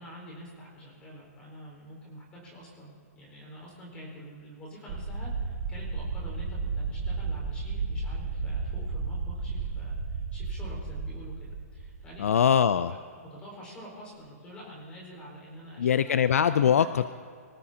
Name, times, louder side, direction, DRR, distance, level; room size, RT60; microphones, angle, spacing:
voice 1, 0.0-12.3 12.9-16.2 16.6-16.7, equal, 10° left, -3 dB, 4.7 m, -47 dB
sound 1, 4.9-12.5, right 4 dB, 25° right, 2.4 m, -33 dB
voice 2, 12.2-13.0 15.8-17.1, left 8 dB, 60° left, 13 dB, 0.5 m, -22 dB
25.0 x 18.0 x 2.9 m, 2.2 s
hypercardioid pair, 175°, 9 cm